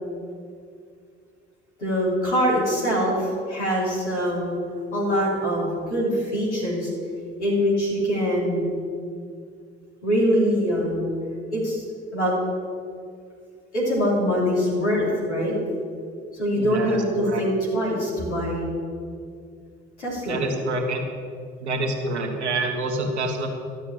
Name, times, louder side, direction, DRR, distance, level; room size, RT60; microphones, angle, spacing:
voice 1, 1.8-4.6 4.9-6.9 7.4-8.8 10.0-11.1 11.5-11.8 12.1-12.3 13.7-15.5 16.3-18.7 20.0-20.4, equal, 85° left, -5 dB, 3.1 m, -23 dB
voice 2, 16.5-17.4 20.3-21.0 21.6-23.5, right 2 dB, 80° right, 4 dB, 1.5 m, -27 dB
12.5 x 7.2 x 8.6 m, 2.3 s
figure-of-eight pair, 50°, 34 cm